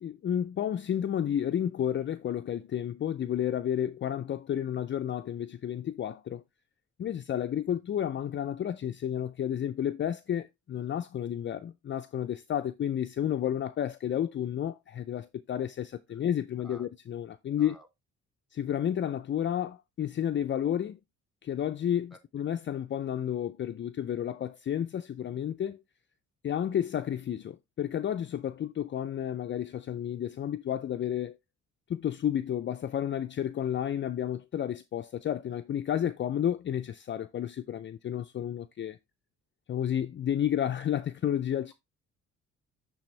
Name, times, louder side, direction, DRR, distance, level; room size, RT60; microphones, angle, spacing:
voice 1, 0.0-6.4 7.0-17.8 18.5-21.0 21.4-25.8 26.4-31.4 31.9-39.0 39.7-41.7, left 10 dB, 40° left, 0.5 m, -31 dB
voice 2, 16.6-16.9 17.6-17.9 22.1-22.2, right 1 dB, ahead, 2.2 m, -52 dB
10.5 x 3.5 x 3.2 m
cardioid pair, 90°, 30 cm